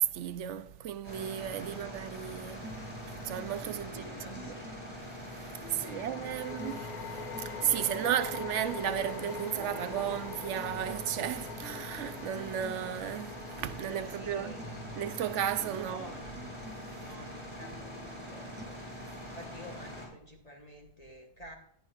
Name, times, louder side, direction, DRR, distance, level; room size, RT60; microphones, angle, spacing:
voice 1, 0.0-2.7 3.1-4.6 5.3-14.5 15.0-16.1, right 10 dB, 80° right, 1.0 m, -34 dB
sound 1, 1.0-20.1, equal, 10° left, 5.2 m, -44 dB
sound 2, 2.6-18.6, right 1 dB, 15° right, 0.5 m, -50 dB
sound 3, 2.8-2.9 5.7-17.1, left 7 dB, 50° left, 0.6 m, -45 dB
voice 2, 3.8-4.7 5.7-6.2 14.1-14.9 15.8-16.3 17.0-18.8 19.3-21.5, left 1 dB, 35° left, 1.5 m, -49 dB
14.5 x 10.5 x 2.5 m
omnidirectional pair, 1.2 m